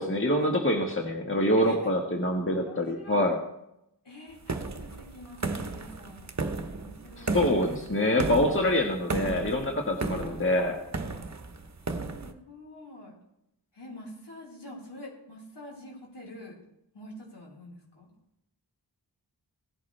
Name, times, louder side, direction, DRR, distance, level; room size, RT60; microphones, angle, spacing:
voice 1, 0.0-3.4 7.2-10.8, left 1 dB, 30° left, 1 dB, 1.5 m, -25 dB
voice 2, 2.5-3.3 4.0-6.4 6.8-7.5 10.1-10.6 12.2-13.2 13.7-16.6 16.9-18.1, left 1 dB, 70° left, -5 dB, 4.5 m, -46 dB
sound 1, 4.5-12.3, right 3 dB, 40° right, 1.0 m, -34 dB
18.0 x 11.0 x 3.4 m, 0.82 s
wide cardioid pair, 60°, 43 cm